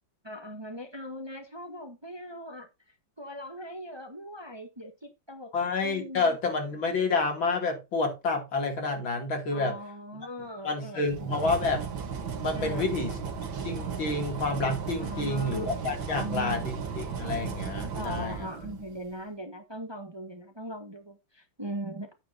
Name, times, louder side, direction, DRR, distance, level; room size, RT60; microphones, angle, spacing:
voice 1, 0.2-5.5 5.8-6.4 9.5-11.4 12.5-13.1 15.0-15.7 16.1-16.6 17.8-22.1, equal, 15° right, 1.2 m, -40 dB
voice 2, 5.5-9.8 10.6-11.9 12.4-13.1 13.6-18.5, left 3 dB, 85° left, 3.5 m, -29 dB
sound 1, 11.1-19.0, right 6 dB, 90° right, 2.3 m, -35 dB
10.0 x 9.2 x 2.7 m
omnidirectional pair, 2.1 m